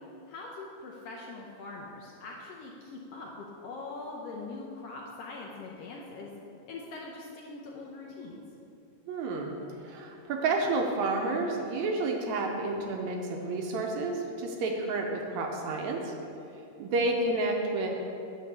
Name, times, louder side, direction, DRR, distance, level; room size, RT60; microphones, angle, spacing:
voice 1, 0.3-3.3 3.6-6.3 6.6-8.4, left 3 dB, 85° left, -2 dB, 1.4 m, -42 dB
voice 2, 9.1-9.5 9.8-16.1 16.8-17.9, right 2 dB, 75° right, 2 dB, 1.8 m, -30 dB
9.9 x 3.6 x 7.1 m, 2.7 s
omnidirectional pair, 3.7 m